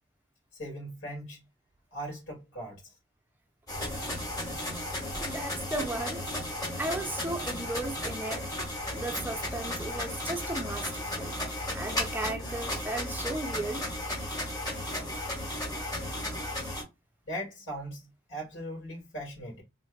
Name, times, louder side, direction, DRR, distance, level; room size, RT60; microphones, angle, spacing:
voice 1, 0.6-1.4 1.9-2.8 17.3-19.6, equal, 80° left, 2.3 m, -39 dB
sound 1, 3.7-16.8, left 1 dB, 20° left, 1.5 m, -34 dB
voice 2, 5.2-6.2 6.8-8.5 8.9-11.4 11.7-13.8, right 2 dB, 10° right, 0.5 m, -35 dB
3.4 x 3.2 x 2.3 m
head